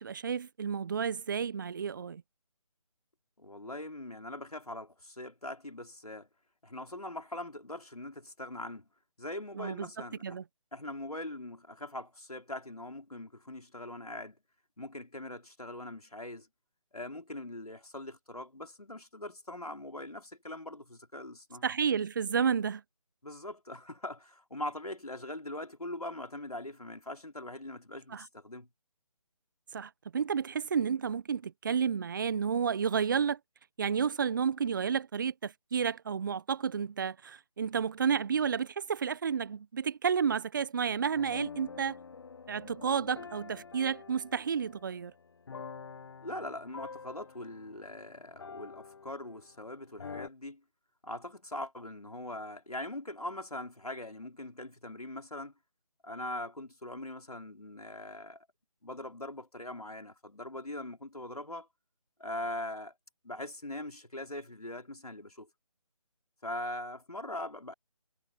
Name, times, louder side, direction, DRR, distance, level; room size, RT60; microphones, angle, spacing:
voice 1, 0.0-2.2 9.6-9.9 10.2-10.4 21.6-22.8 28.1-28.3 29.7-33.4 33.8-42.0 42.5-45.1, right 7 dB, 35° right, 1.2 m, -31 dB
voice 2, 3.4-6.3 6.6-8.8 9.2-10.4 10.7-14.4 14.8-16.5 16.9-21.7 23.2-28.7 46.2-50.6 51.0-55.5 56.0-58.5 58.8-61.7 62.2-62.9 63.2-65.5 66.4-67.7, left 1 dB, 85° left, 4.5 m, -41 dB
sound 1, 41.1-49.6 50.0-50.3, left 5 dB, 45° left, 1.5 m, -47 dB
figure-of-eight pair, 155°, 19 cm